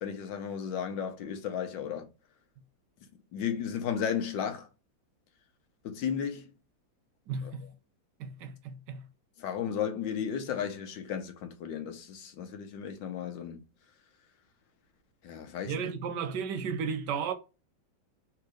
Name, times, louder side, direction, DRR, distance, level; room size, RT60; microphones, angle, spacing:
voice 1, 0.0-2.1 3.3-4.7 5.8-6.5 7.4-7.7 9.4-13.6 15.2-15.9, left 8 dB, 75° left, 1.5 m, -34 dB
voice 2, 7.3-7.7 8.2-9.0 15.7-17.3, right 6 dB, 75° right, 1.1 m, -34 dB
3.5 x 2.9 x 4.7 m
omnidirectional pair, 2.1 m